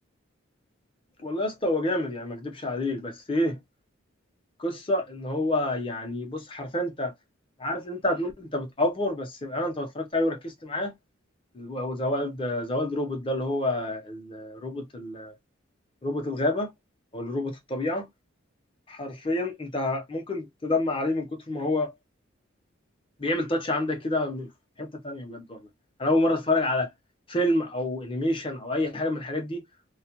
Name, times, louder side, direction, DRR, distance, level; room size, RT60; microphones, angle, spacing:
voice 1, 1.2-3.6 4.6-7.1 7.6-11.0 11.5-15.3 16.0-16.7 17.1-18.1 18.9-21.9 23.2-24.5 24.8-25.6 26.0-26.9 27.3-29.7, left 1 dB, 25° left, 0.7 m, -28 dB
2.3 x 2.1 x 2.9 m
head